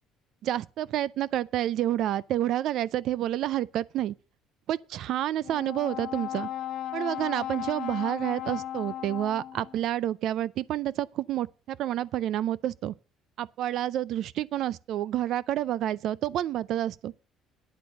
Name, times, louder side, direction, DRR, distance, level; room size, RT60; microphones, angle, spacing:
voice 1, 0.4-4.1 4.7-6.5 6.9-12.9 13.4-17.1, right 12 dB, 50° right, 0.4 m, -29 dB
Brass instrument, 5.4-9.8, left 12 dB, 50° left, 0.9 m, -36 dB
9.6 x 8.7 x 6.4 m
cardioid pair, 175°, 0 cm